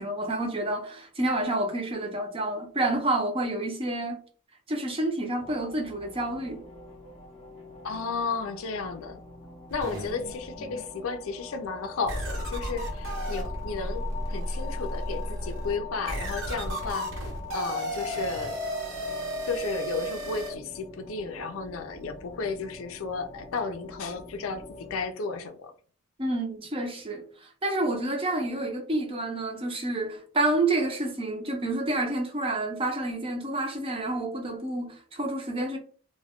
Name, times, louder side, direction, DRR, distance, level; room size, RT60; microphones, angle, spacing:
voice 1, 0.0-4.2 4.7-6.6 26.2-27.3 27.6-35.8, right 2 dB, 25° right, 0.6 m, -29 dB
sound 1, 5.4-25.0, left 4 dB, 30° left, 0.6 m, -44 dB
voice 2, 7.8-9.2 9.7-18.6 19.5-25.7, left 4 dB, 75° left, 0.4 m, -33 dB
sound 2, 9.7-10.9 11.4-11.5 12.1-20.5, equal, 65° right, 1.0 m, -33 dB
2.3 x 2.2 x 3.5 m
head